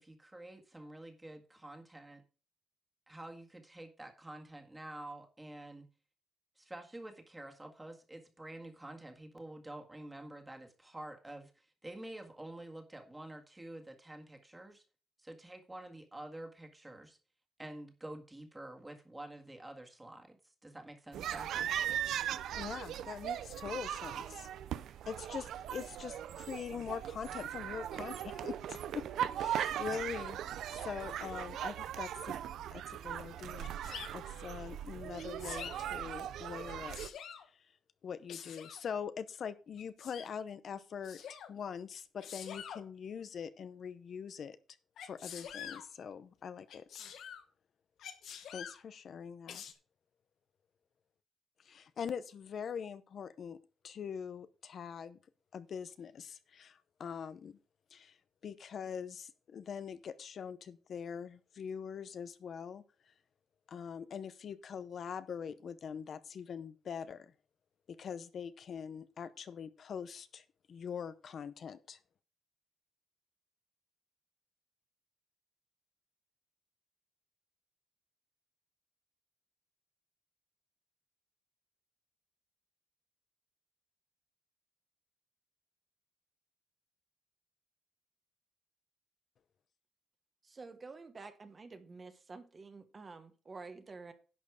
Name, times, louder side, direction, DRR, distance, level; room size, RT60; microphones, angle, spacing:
voice 1, 0.0-2.2 3.1-5.9 6.6-14.8 15.2-17.2 17.6-21.7, right 1 dB, 10° right, 1.8 m, -48 dB
sound 1, 21.1-37.1, right 10 dB, 85° right, 0.5 m, -39 dB
voice 2, 22.6-24.5 25.1-29.1 29.4-30.4 30.7-32.4 32.7-33.7 34.1-37.0 37.5-37.7 38.0-44.6 45.0-46.9 48.5-49.6 51.6-53.6 53.8-55.2 55.5-57.6 57.9-58.2 58.4-62.8 63.7-67.3 67.9-72.0, left 7 dB, 55° left, 0.7 m, -43 dB
Sneeze, 33.6-34.1 35.2-35.8 36.6-37.5 38.3-38.8 39.8-40.3 41.0-41.5 42.2-42.8 45.0-45.8 46.7-47.4 48.0-48.8 49.5-49.7, left 8 dB, 75° left, 1.3 m, -46 dB
voice 3, 90.4-94.1, right 4 dB, 30° right, 1.2 m, -49 dB
11.0 x 6.5 x 4.8 m
cardioid pair, 120°, 0 cm